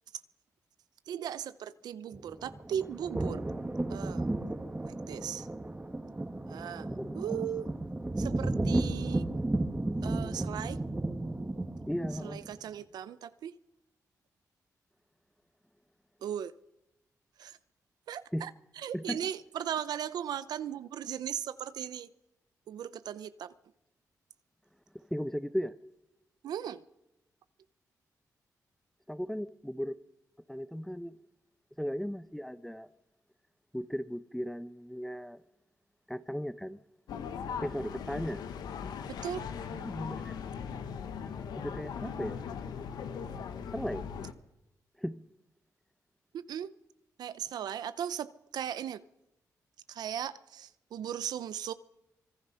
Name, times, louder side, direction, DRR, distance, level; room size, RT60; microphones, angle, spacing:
voice 1, 1.1-3.4 3.9-4.3 4.8-5.5 6.5-6.9 7.1-7.7 8.2-9.2 10.0-10.8 12.1-13.5 16.2-16.5 17.4-17.6 18.1-22.1 22.7-23.5 26.4-26.8 39.2-39.4 46.3-46.7 47.2-49.0 49.9-51.7, right 9 dB, 85° right, 0.7 m, -37 dB
sound 1, 2.1-12.5, right 2 dB, 20° right, 1.8 m, -34 dB
voice 2, 6.8-7.2 11.9-12.4 18.3-18.5 18.9-19.2 24.9-25.7 29.1-30.0 30.5-31.2 31.8-32.9 33.7-35.4 36.1-36.8 37.6-38.4 39.7-40.4 41.6-42.4 43.7-44.1 45.0-45.3, equal, 5° left, 1.0 m, -36 dB
sound 2, 37.1-44.3, left 7 dB, 90° left, 1.2 m, -39 dB
25.0 x 21.5 x 5.8 m
cardioid pair, 60°, 7 cm